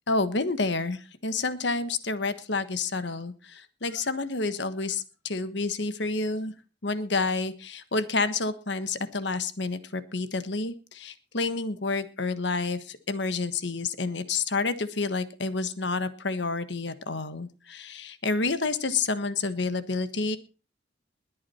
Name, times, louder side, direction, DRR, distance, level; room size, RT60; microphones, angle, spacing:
voice 1, 0.1-6.5 6.8-20.4, left 3 dB, 65° left, 12 dB, 1.3 m, -29 dB
21.0 x 8.6 x 4.3 m, 0.33 s
head